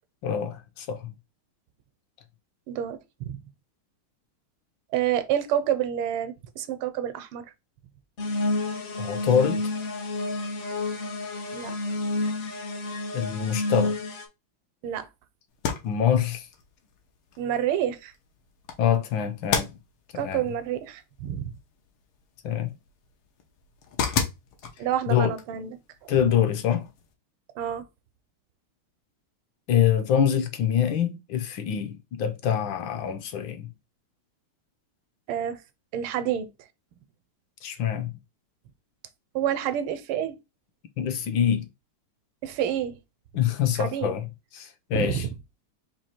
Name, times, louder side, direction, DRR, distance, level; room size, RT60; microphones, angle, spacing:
voice 1, 0.2-1.1 9.0-9.7 13.1-14.0 15.8-16.5 18.8-19.7 20.1-20.4 22.4-22.7 25.1-25.4 26.1-26.9 29.7-33.7 37.6-38.1 41.0-41.7 43.3-44.2 44.5-45.2, left 9 dB, 70° left, 1.3 m, -25 dB
voice 2, 2.7-3.4 4.9-7.5 11.5-11.7 14.8-15.1 17.4-18.1 20.1-21.5 24.8-26.2 27.6-27.8 35.3-35.6 35.9-36.5 39.3-40.4 42.4-43.0 43.7-44.1 44.9-45.3, right 10 dB, 85° right, 1.5 m, -28 dB
sound 1, 8.2-14.2, left 2 dB, 55° left, 0.8 m, -30 dB
sound 2, 15.5-27.1, left 6 dB, 85° left, 1.8 m, -36 dB
4.4 x 2.7 x 4.3 m
omnidirectional pair, 2.3 m